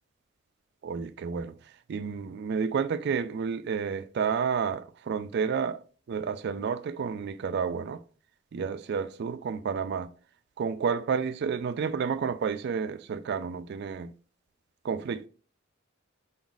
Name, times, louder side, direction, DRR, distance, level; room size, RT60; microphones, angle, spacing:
voice 1, 0.8-1.5 1.9-5.8 6.1-8.0 8.5-10.1 10.6-14.1 14.8-15.3, right 6 dB, 55° right, 0.3 m, -30 dB
4.0 x 3.9 x 2.3 m
head